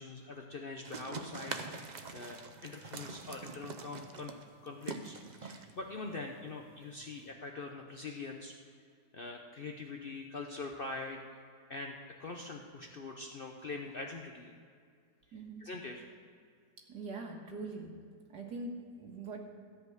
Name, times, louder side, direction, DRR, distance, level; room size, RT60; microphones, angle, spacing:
voice 1, 0.0-1.8 2.1-4.4 4.6-8.5 9.1-11.2 11.7-14.5 15.6-16.1, left 3 dB, 50° left, 2 dB, 0.7 m, -43 dB
sound 1, 0.8-7.3, right 4 dB, 60° right, 0.4 m, -45 dB
voice 2, 15.3-15.6 16.9-17.9 18.3-19.4, right 3 dB, 80° right, 1 dB, 2.1 m, -42 dB
13.5 x 5.3 x 7.9 m, 2.2 s
omnidirectional pair, 1.8 m